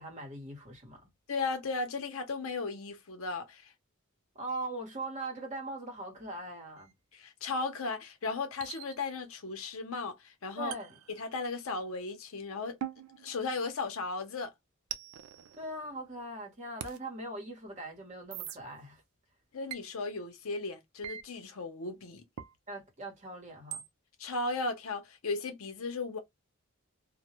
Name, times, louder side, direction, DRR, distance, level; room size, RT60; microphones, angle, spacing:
voice 1, 0.0-1.1 4.3-6.9 10.6-11.0 15.6-19.0 22.7-23.8, right 2 dB, 35° right, 1.0 m, -41 dB
voice 2, 1.3-3.7 7.1-10.7 11.1-12.8 13.2-14.5 19.5-22.2 24.2-26.2, left 3 dB, 75° left, 0.7 m, -36 dB
sound 1, 6.8-6.9 8.6-9.4 10.7-11.8 12.8-14.1 14.9-16.2 16.8-17.0 18.3-18.6 19.7-19.9 21.0-21.2 22.4-22.6 23.7-23.9, right 10 dB, 85° right, 0.4 m, -43 dB
2.1 x 2.1 x 2.8 m
head